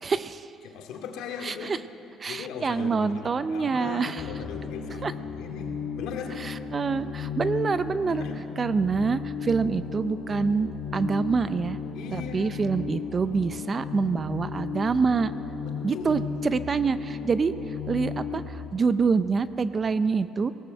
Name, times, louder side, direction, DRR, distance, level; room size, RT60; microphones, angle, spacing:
voice 1, 0.0-0.5 1.4-1.8 2.2-4.3 5.0-5.1 6.4-8.2 8.6-11.8 12.1-15.3 15.8-17.5 17.9-20.5, right 5 dB, 25° right, 13 dB, 0.5 m, -26 dB
voice 2, 0.6-1.8 2.3-6.5 8.0-8.4 11.9-12.7 15.6-16.4, left 7 dB, 75° left, 3 dB, 2.3 m, -38 dB
sound 1, 4.2-18.5, left 6 dB, 55° left, 3.5 m, -35 dB
18.5 x 18.0 x 7.8 m, 2.7 s
cardioid pair, 155°, 0 cm